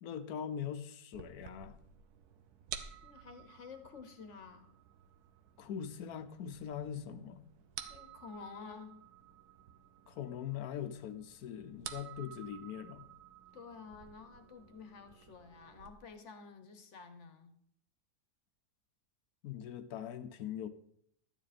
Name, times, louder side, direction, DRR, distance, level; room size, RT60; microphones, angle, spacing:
voice 1, 0.0-1.8 5.6-7.5 10.1-13.1 19.4-20.7, left 9 dB, 75° left, 1.3 m, -42 dB
sound 1, 1.1-15.9, right 8 dB, 80° right, 1.3 m, -52 dB
voice 2, 3.0-4.7 7.9-9.1 13.5-17.5, left 5 dB, 50° left, 1.4 m, -51 dB
12.5 x 9.1 x 4.2 m
omnidirectional pair, 1.6 m